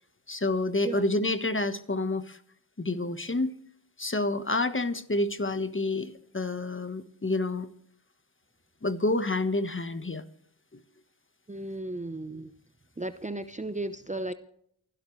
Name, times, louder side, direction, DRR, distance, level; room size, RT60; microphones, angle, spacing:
voice 1, 0.3-2.4 2.8-3.5 4.0-7.7 8.8-10.2, left 2 dB, 25° left, 11 dB, 1.3 m, -28 dB
voice 2, 11.5-12.5 13.0-14.3, right 2 dB, 15° right, 11 dB, 0.9 m, -35 dB
28.5 x 12.0 x 3.3 m, 0.69 s
cardioid pair, 40°, 46 cm